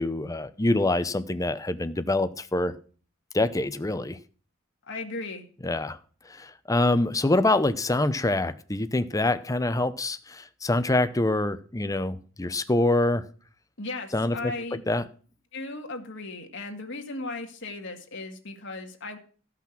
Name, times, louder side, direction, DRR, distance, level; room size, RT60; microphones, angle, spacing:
voice 1, 0.0-2.7 3.3-4.2 5.6-6.0 6.3-13.2 14.1-14.5 14.9-15.0, left 2 dB, 15° left, 12 dB, 0.7 m, -25 dB
voice 2, 4.9-5.5 13.8-14.8 15.5-19.2, left 2 dB, 60° left, 3 dB, 2.0 m, -36 dB
14.5 x 6.0 x 5.9 m, 0.41 s
head